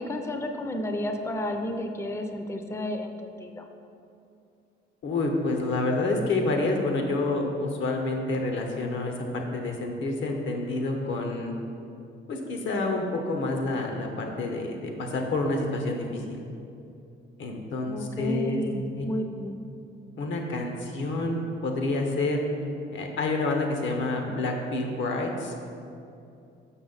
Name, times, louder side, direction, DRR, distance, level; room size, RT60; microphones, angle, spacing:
voice 1, 0.0-3.6 17.8-19.6, left 1 dB, 15° left, 5 dB, 0.5 m, -32 dB
voice 2, 5.0-11.5 12.3-16.4 17.4-18.6 19.0-19.1 20.2-22.4 22.9-25.7, left 2 dB, 70° left, 2 dB, 1.0 m, -28 dB
6.0 x 5.8 x 4.0 m, 2.6 s
cardioid pair, 90°, 20 cm